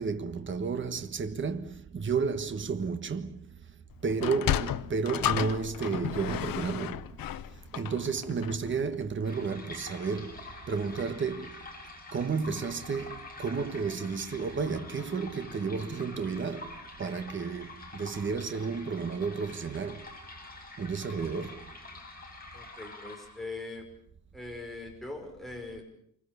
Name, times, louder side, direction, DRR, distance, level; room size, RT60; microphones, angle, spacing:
voice 1, 0.0-3.6 4.0-7.2 7.7-11.7 12.1-20.1 20.8-21.7, right 5 dB, 35° right, 1.3 m, -32 dB
Sliding door, 4.1-8.7, left 11 dB, 75° left, 0.9 m, -32 dB
sound 1, 9.2-23.6, left 2 dB, 25° left, 6.0 m, -47 dB
voice 2, 22.5-23.9 24.3-25.8, left 2 dB, ahead, 5.6 m, -41 dB
27.0 x 25.0 x 6.9 m
wide cardioid pair, 160°, 34 cm